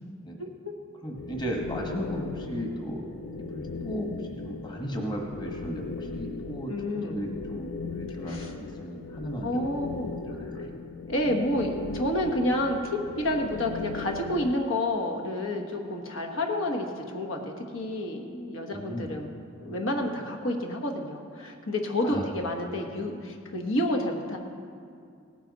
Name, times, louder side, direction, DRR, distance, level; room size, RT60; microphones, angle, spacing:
voice 1, 0.4-0.7 3.7-3.9 6.7-7.3 8.2-8.5 9.4-10.2 11.1-19.3 19.6-24.4, left 1 dB, 85° left, 2 dB, 1.3 m, -29 dB
voice 2, 1.0-3.0 3.4-4.1 4.4-9.7 10.3-10.8 18.7-19.1 22.0-22.6, equal, 20° left, 1 dB, 1.3 m, -36 dB
sound 1, 1.1-14.5, left 4 dB, 70° left, 0.4 m, -38 dB
17.5 x 10.0 x 4.0 m, 2.3 s
head